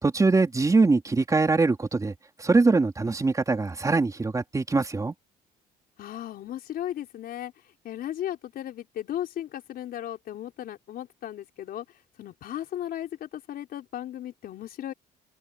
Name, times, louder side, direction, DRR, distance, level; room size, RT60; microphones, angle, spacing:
voice 1, 0.0-2.1 2.4-5.1, right 3 dB, 20° right, 3.3 m, -22 dB
voice 2, 6.0-7.5 7.8-11.9 12.2-14.9, left 11 dB, 65° left, 4.4 m, -35 dB
cardioid pair, 110°, 17 cm